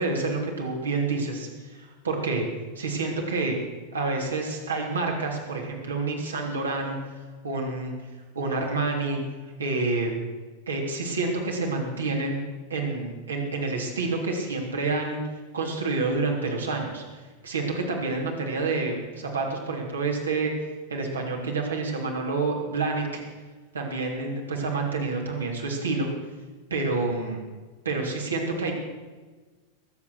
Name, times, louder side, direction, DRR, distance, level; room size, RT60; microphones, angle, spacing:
voice 1, 0.0-2.4 2.7-3.6 3.9-7.0 7.4-7.9 8.3-9.2 9.6-10.2 10.7-12.4 12.7-15.2 15.5-17.0 17.4-20.5 20.9-23.2 23.7-26.1 26.7-27.4 27.8-28.7, right 3 dB, 70° right, 0 dB, 3.3 m, -28 dB
21.0 x 8.6 x 6.4 m, 1.4 s
figure-of-eight pair, 90°, 0 cm